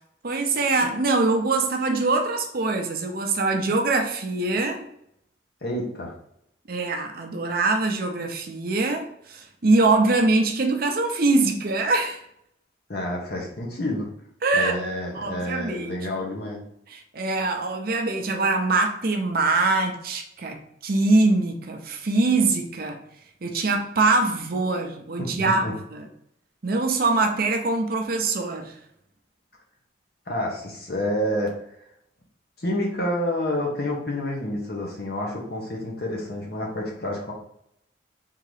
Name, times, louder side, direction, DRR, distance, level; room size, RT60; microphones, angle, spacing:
voice 1, 0.2-4.8 6.7-12.2 14.4-14.8 15.1-15.9 16.9-23.0 23.4-26.1 26.6-28.7, right 3 dB, 50° right, 3 dB, 0.6 m, -23 dB
voice 2, 5.6-6.1 12.9-14.1 14.5-16.6 25.2-25.7 30.3-31.6 32.6-37.3, left 1 dB, 55° left, -1 dB, 1.0 m, -29 dB
3.8 x 2.8 x 4.8 m, 0.73 s
head